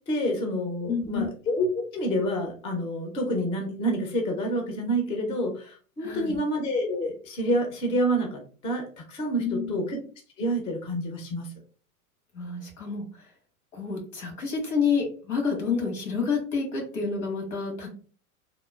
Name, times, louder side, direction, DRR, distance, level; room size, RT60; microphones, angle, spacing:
voice 1, 0.1-10.0 10.4-11.5, equal, 15° left, 2 dB, 0.3 m, -28 dB
voice 2, 0.9-1.3 6.0-6.4 9.4-9.8 12.3-13.3 13.7-17.9, left 5 dB, 85° left, 1 dB, 1.4 m, -29 dB
2.9 x 2.0 x 2.2 m, 0.41 s
hypercardioid pair, 110°, 43 cm